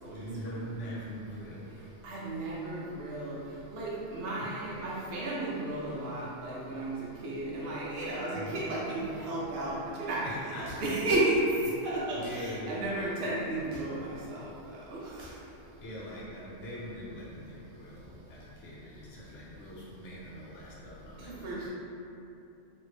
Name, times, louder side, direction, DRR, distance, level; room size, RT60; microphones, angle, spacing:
voice 1, 0.0-1.8 4.4-4.5 8.3-8.6 10.2-10.9 12.1-12.9 15.8-21.7, equal, 75° left, -6 dB, 1.0 m, -42 dB
voice 2, 1.8-15.4 21.2-21.7, right 2 dB, 60° right, -6 dB, 0.8 m, -33 dB
sound 1, 10.7-11.1 12.2-12.4 13.7-14.1 15.2-15.5, right 1 dB, 90° right, 1.1 m, -49 dB
3.0 x 2.5 x 3.1 m, 2.8 s
omnidirectional pair, 1.2 m